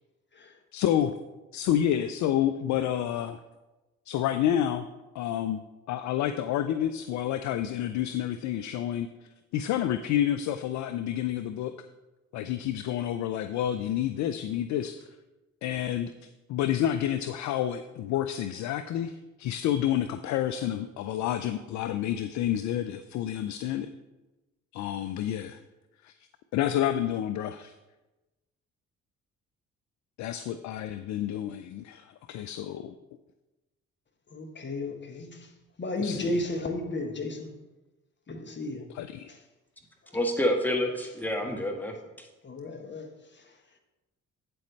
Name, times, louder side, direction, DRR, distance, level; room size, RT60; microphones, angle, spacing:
voice 1, 0.7-1.1 1.5-3.4 4.1-4.9 5.1-5.6 5.9-11.7 12.3-15.1 15.6-23.9 24.7-25.6 26.0-26.1 26.5-27.7 30.2-32.9 36.0-36.5 38.9-39.3, left 11 dB, 45° left, 10 dB, 0.5 m, -29 dB
voice 2, 34.3-35.3 35.8-37.5 38.3-38.8 42.4-43.1, left 2 dB, 25° left, 4 dB, 1.3 m, -33 dB
voice 3, 40.1-41.9, left 1 dB, 5° left, 2 dB, 1.4 m, -28 dB
8.3 x 7.6 x 3.2 m, 1.1 s
figure-of-eight pair, 45°, 40 cm